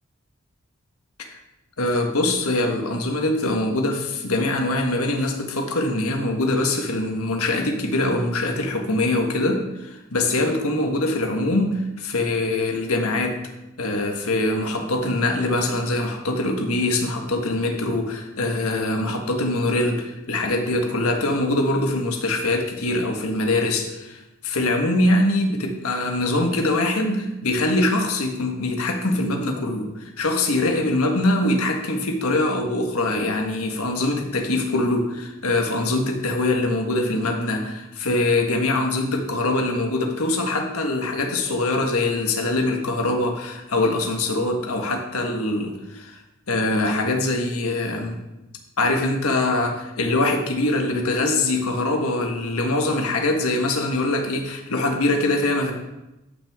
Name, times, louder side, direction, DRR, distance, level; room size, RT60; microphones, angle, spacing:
voice 1, 1.8-13.4 13.8-46.2 46.5-48.2 48.8-55.7, left 2 dB, 85° left, 3 dB, 1.5 m, -23 dB
13.0 x 6.2 x 3.6 m, 0.95 s
head